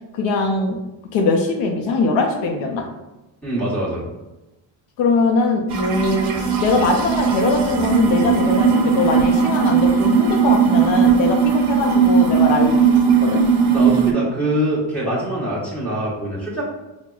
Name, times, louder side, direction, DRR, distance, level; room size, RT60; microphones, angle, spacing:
voice 1, 0.1-0.8 1.1-2.9 5.0-6.3 6.6-13.4, left 3 dB, 70° left, 2 dB, 0.6 m, -21 dB
voice 2, 3.4-4.1 13.7-16.6, right 1 dB, 5° left, -7 dB, 1.0 m, -24 dB
sound 1, 5.7-14.1, right 6 dB, 75° right, 0.7 m, -17 dB
5.9 x 2.1 x 2.3 m, 1.0 s
cardioid pair, 160°, 48 cm